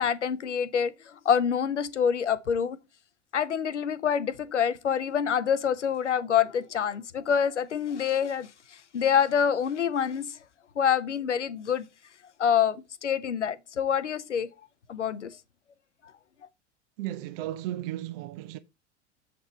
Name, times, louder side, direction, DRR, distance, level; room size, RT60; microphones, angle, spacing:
voice 1, 0.0-2.8 3.3-10.4 10.8-11.8 12.4-14.5 14.9-15.4, left 8 dB, 90° left, 0.6 m, -26 dB
voice 2, 17.0-18.6, right 14 dB, 55° right, 0.6 m, -35 dB
7.4 x 4.2 x 4.3 m
hypercardioid pair, 85°, 35 cm